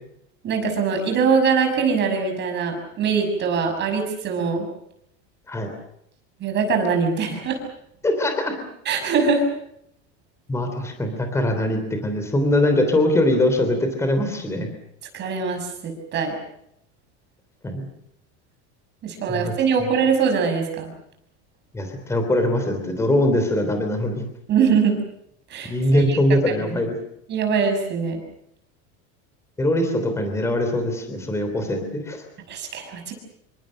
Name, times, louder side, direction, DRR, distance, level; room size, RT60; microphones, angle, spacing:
voice 1, 0.4-4.7 6.4-7.6 8.8-9.5 15.1-16.4 19.0-20.9 24.5-24.9 25.5-26.4 27.3-28.2 32.5-33.1, right 5 dB, 30° right, 5 dB, 6.2 m, -22 dB
voice 2, 8.0-8.5 10.5-14.7 17.6-17.9 19.3-19.5 21.7-24.3 25.6-26.9 29.6-32.2, left 1 dB, 10° left, 6 dB, 3.3 m, -22 dB
27.5 x 24.5 x 6.4 m, 0.75 s
cardioid pair, 175°, 35 cm